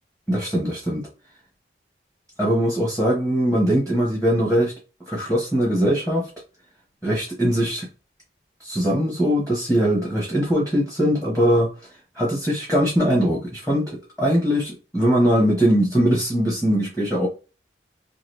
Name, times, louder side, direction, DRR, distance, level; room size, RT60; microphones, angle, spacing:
voice 1, 0.3-1.0 2.4-4.7 5.1-6.3 7.0-7.9 8.6-11.7 12.2-13.9 14.2-17.3, equal, 5° left, -4 dB, 0.8 m, -21 dB
2.8 x 2.4 x 3.0 m, 0.33 s
head